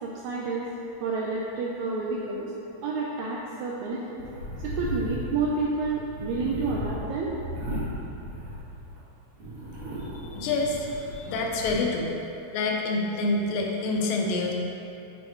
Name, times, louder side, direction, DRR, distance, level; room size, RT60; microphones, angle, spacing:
voice 1, 0.0-0.7 1.0-2.5 2.8-4.2 4.6-7.3, right 3 dB, 85° right, -4 dB, 1.7 m, -29 dB
sound 1, 4.2-9.0 9.3-11.7, equal, 65° right, 2.8 m, -36 dB
voice 2, 10.4-10.9 11.2-12.1 12.5-14.5, left 3 dB, 85° left, 0 dB, 2.4 m, -27 dB
7.4 x 6.4 x 2.9 m, 2.8 s
omnidirectional pair, 3.9 m